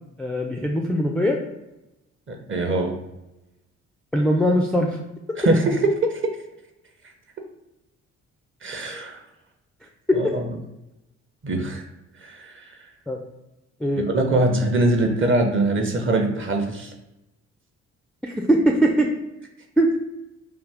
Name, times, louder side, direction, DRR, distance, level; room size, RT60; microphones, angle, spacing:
voice 1, 0.2-1.4 4.1-5.0 10.1-10.2 13.1-13.2 13.8-14.0 18.2-19.1 19.8-19.9, equal, 5° left, 0 dB, 0.3 m, -20 dB
voice 2, 2.3-3.0 5.4-6.1 8.6-9.2 10.1-10.4 11.4-11.8 12.2-12.6 14.1-16.9, right 2 dB, 35° right, 3 dB, 0.7 m, -22 dB
2.4 x 2.4 x 3.3 m, 0.94 s
hypercardioid pair, 50°, 37 cm